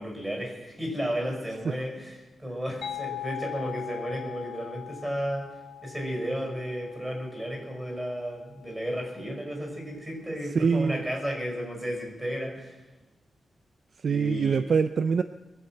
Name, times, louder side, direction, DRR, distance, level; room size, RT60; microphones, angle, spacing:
voice 1, 0.0-5.5 5.8-12.8 14.1-14.6, equal, 10° right, 0 dB, 5.7 m, -33 dB
sound 1, 2.8-8.3, left 12 dB, 80° left, 1.2 m, -41 dB
voice 2, 10.5-11.0 14.0-15.2, right 5 dB, 50° right, 11 dB, 0.4 m, -24 dB
22.0 x 8.0 x 7.7 m, 1.1 s
wide cardioid pair, 155°, 0 cm